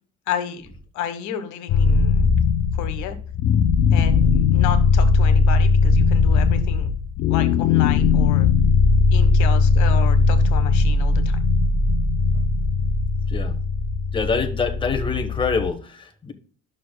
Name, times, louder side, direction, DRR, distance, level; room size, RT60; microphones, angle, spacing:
voice 1, 0.3-2.3 2.7-3.2 3.9-6.9 7.3-8.5 9.1-11.4, left 9 dB, 75° left, 9 dB, 1.4 m, -32 dB
sound 1, 1.7-15.7, left 4 dB, 60° left, 0.7 m, -19 dB
voice 2, 14.1-16.3, left 4 dB, 15° left, 5 dB, 1.2 m, -25 dB
11.5 x 6.5 x 2.3 m, 0.41 s
cardioid pair, 145°, 30 cm